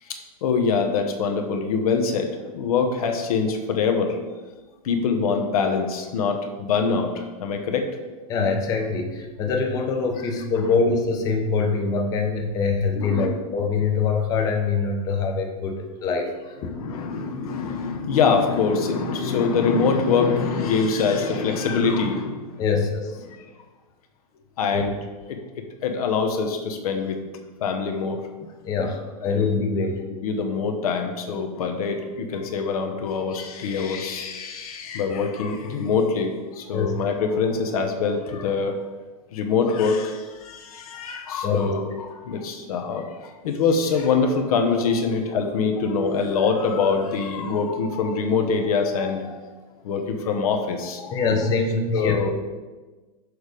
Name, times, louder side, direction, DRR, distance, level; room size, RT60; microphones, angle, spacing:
voice 1, 0.0-4.2 4.8-7.9 10.2-10.3 12.9-13.3 16.6-22.6 23.2-23.4 24.6-24.9 25.3-25.4 25.8-27.2 27.6-28.2 29.2-29.5 29.8-29.9 30.2-38.8 39.3-49.4 49.8-51.2 51.9-52.3, left 5 dB, 75° left, 5 dB, 1.0 m, -24 dB
voice 2, 8.3-16.7 22.6-23.2 24.7-24.8 28.6-30.0 36.7-36.9 41.4-41.7 51.1-52.2, left 4 dB, 20° left, 3 dB, 0.7 m, -24 dB
6.4 x 4.9 x 5.1 m, 1.3 s
supercardioid pair, 175°, 19 cm